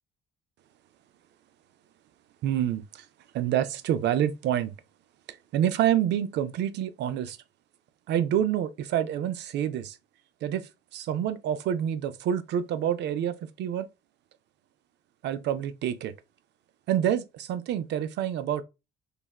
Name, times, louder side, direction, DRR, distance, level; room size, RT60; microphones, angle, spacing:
voice 1, 2.4-3.0 3.3-4.7 5.5-7.4 8.1-10.0 10.4-10.6 10.9-13.9 15.2-16.1 16.9-18.6, right 10 dB, 60° right, 0.4 m, -27 dB
3.3 x 2.3 x 2.2 m
cardioid pair, 95°, 20 cm